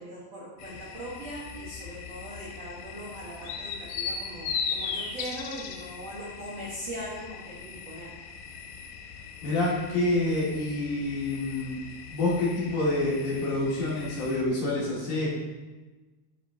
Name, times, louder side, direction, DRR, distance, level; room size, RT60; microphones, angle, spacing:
voice 1, 0.0-8.1, equal, 55° right, -7 dB, 2.0 m, -40 dB
sound 1, 0.6-14.4, left 6 dB, 80° left, 2.1 m, -39 dB
voice 2, 9.4-11.8 12.1-15.3, left 2 dB, 55° left, -7 dB, 3.7 m, -27 dB
11.5 x 7.0 x 2.9 m, 1.2 s
omnidirectional pair, 4.7 m